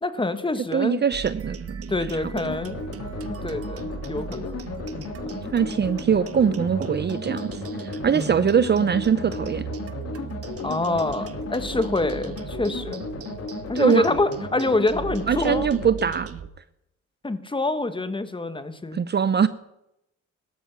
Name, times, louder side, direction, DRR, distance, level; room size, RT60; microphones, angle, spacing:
voice 1, 0.0-1.0 1.9-2.8 3.4-4.5 5.0-5.1 5.4-5.5 8.1-8.4 10.6-13.0 13.7-15.7 17.2-19.0, left 2 dB, 15° left, 11 dB, 1.4 m, -26 dB
voice 2, 0.7-1.9 5.5-7.5 8.0-9.6 13.8-14.0 15.3-16.3 18.9-19.5, right 7 dB, 35° right, 15 dB, 0.6 m, -22 dB
sound 1, 1.1-16.5, right 7 dB, 50° right, 1.2 m, -37 dB
sound 2, 2.4-15.9, left 4 dB, 55° left, 2.9 m, -35 dB
17.0 x 13.0 x 6.1 m, 0.86 s
cardioid pair, 90°, 30 cm